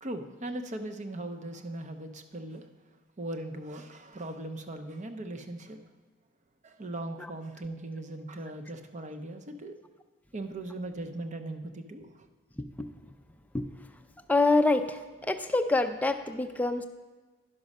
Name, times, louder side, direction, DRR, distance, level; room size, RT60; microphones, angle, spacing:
voice 1, 0.0-2.7 3.2-5.8 6.6-9.8 10.3-12.3, right 1 dB, 35° right, 6 dB, 0.6 m, -39 dB
voice 2, 14.3-15.0 15.3-16.9, left 3 dB, 10° left, 7 dB, 0.4 m, -25 dB
11.0 x 6.0 x 5.3 m, 1.3 s
head